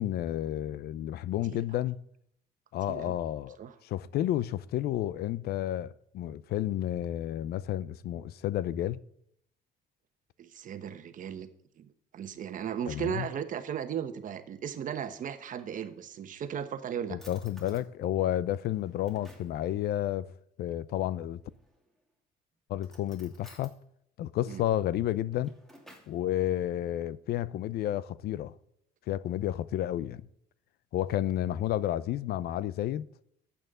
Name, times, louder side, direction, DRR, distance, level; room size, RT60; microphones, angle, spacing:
voice 1, 0.0-2.0 2.7-3.6 3.8-9.0 12.9-13.3 17.1-20.3 20.6-21.4 22.7-23.7 24.2-25.5 26.1-28.5 29.1-30.2 30.9-33.1, left 12 dB, 70° left, 0.6 m, -31 dB
voice 2, 10.4-11.5 11.8-17.2 24.5-24.6, right 9 dB, 50° right, 1.2 m, -36 dB
Drawer open or close, 15.3-16.2 16.8-16.9 17.2-17.9 18.5-19.6 21.5-22.0 22.8-23.8 25.1-26.2, right 1 dB, ahead, 2.7 m, -56 dB
12.0 x 8.6 x 3.7 m
cardioid pair, 110°, 17 cm